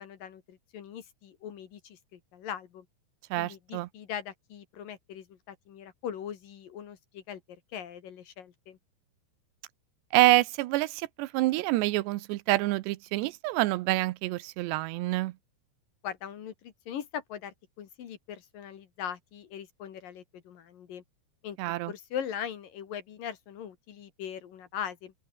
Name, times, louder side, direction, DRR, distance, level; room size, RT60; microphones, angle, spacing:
voice 1, 0.0-2.9 3.4-7.4 7.7-8.8 16.0-21.0 21.4-21.6 21.9-25.1, left 9 dB, 60° left, 3.2 m, -40 dB
voice 2, 3.3-3.9 10.1-15.3 21.6-21.9, right 18 dB, 85° right, 2.9 m, -27 dB
open air
omnidirectional pair, 5.1 m